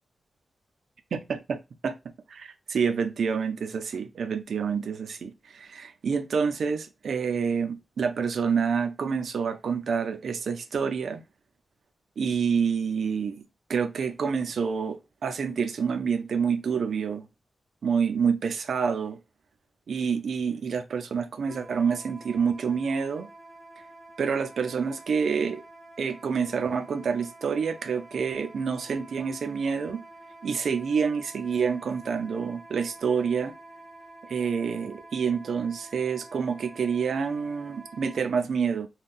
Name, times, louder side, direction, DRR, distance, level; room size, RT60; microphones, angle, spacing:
voice 1, 1.1-1.6 1.8-2.0 2.3-11.2 12.2-13.4 13.7-15.0 15.2-17.3 17.8-19.2 19.9-23.3 24.2-25.6 26.0-30.0 30.4-33.5 34.3-38.9, right 6 dB, 75° right, 0.5 m, -28 dB
Wind instrument woodwind instrument, 21.5-38.2, right 2 dB, 15° right, 0.8 m, -48 dB
2.5 x 2.2 x 3.6 m
wide cardioid pair, 110°, 0 cm